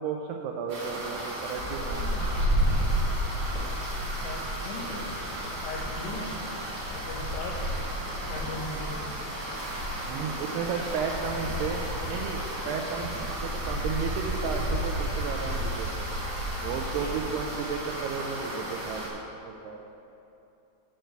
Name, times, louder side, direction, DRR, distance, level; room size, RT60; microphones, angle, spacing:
voice 1, 0.0-2.4 10.1-13.1 13.4-16.1 16.6-19.8, right 6 dB, 80° right, 2 dB, 2.5 m, -33 dB
sound 1, 0.7-19.1, equal, 35° right, 2.1 m, -31 dB
sound 2, 1.8-14.9, equal, 60° right, 3.7 m, -50 dB
sound 3, 3.4-3.9 4.8-5.6 5.9-6.6 7.0-7.4 7.7-7.8 8.0-8.5 8.9-9.6 9.9-10.8 11.2-11.9 12.3-13.4 13.7-14.0 14.4-14.7 14.9-15.1 15.5-16.3 16.9-18.1 18.4-18.8, left 1 dB, 10° right, 0.3 m, -48 dB
voice 2, 4.2-5.0 5.6-6.3 6.9-7.6 8.3-8.9, left 3 dB, 85° left, 0 dB, 3.6 m, -38 dB
11.0 x 4.5 x 7.9 m, 2.8 s
omnidirectional pair, 4.8 m